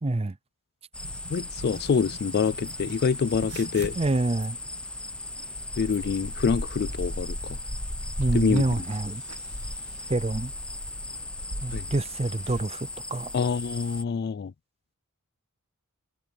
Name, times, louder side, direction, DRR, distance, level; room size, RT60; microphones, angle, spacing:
voice 1, 0.0-0.4 4.0-4.6 8.2-9.2 10.1-10.5 11.6-13.3, right 2 dB, 25° right, 0.6 m, -27 dB
sound 1, 0.9-14.0, left 1 dB, 5° left, 0.9 m, -36 dB
sound 2, 1.0-12.6, right 2 dB, 85° right, 2.1 m, -46 dB
voice 2, 1.3-4.0 5.8-7.6 8.3-8.7 11.7-11.8 13.3-14.5, left 6 dB, 45° left, 0.4 m, -26 dB
sound 3, 1.7-10.1, right 2 dB, 60° right, 2.8 m, -57 dB
head